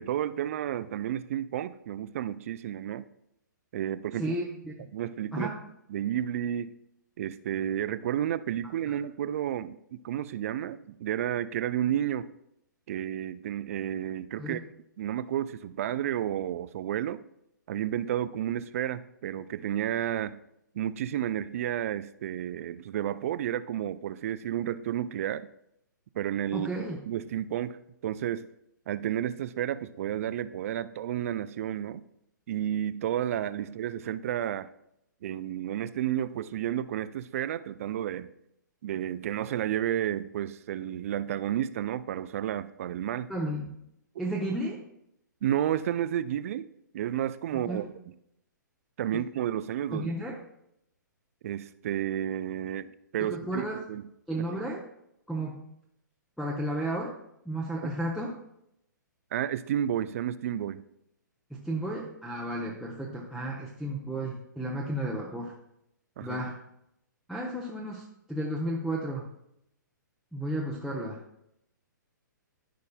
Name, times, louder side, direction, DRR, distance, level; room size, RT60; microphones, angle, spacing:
voice 1, 0.0-3.0 3.7-4.3 4.9-5.5 5.9-6.7 7.2-12.3 12.9-14.6 15.0-17.2 17.7-20.4 20.7-25.5 26.1-26.7 27.1-27.8 28.0-28.4 28.9-32.0 32.5-34.7 35.2-38.3 38.8-43.3 45.4-47.8 49.0-50.1 51.4-54.0 57.8-57.9 59.3-60.8 66.2-66.4, right 11 dB, 45° right, 15 dB, 0.4 m, -31 dB
voice 2, 4.2-4.7 5.3-5.5 8.9-9.0 14.4-14.6 26.5-27.0 43.3-43.7 44.2-44.8 47.5-47.8 49.1-49.2 49.9-50.4 53.2-53.8 54.3-54.8 55.3-55.6 56.4-57.1 57.5-58.3 61.5-65.5 66.2-66.6 67.3-68.0 68.3-69.2 70.3-71.2, right 1 dB, ahead, -2 dB, 0.8 m, -33 dB
13.5 x 5.3 x 2.3 m, 0.79 s
figure-of-eight pair, 125°, 10 cm